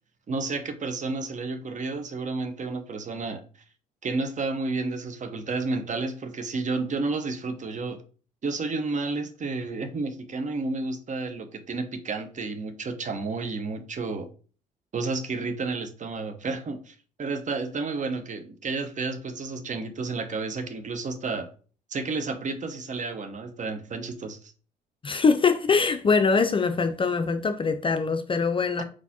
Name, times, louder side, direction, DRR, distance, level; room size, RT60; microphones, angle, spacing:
voice 1, 0.3-3.4 4.0-8.0 8.4-14.3 14.9-21.5 21.9-24.4, right 3 dB, 35° right, 0.8 m, -31 dB
voice 2, 25.0-28.8, left 5 dB, 25° left, 0.5 m, -23 dB
4.7 x 4.0 x 2.8 m
figure-of-eight pair, 50°, 21 cm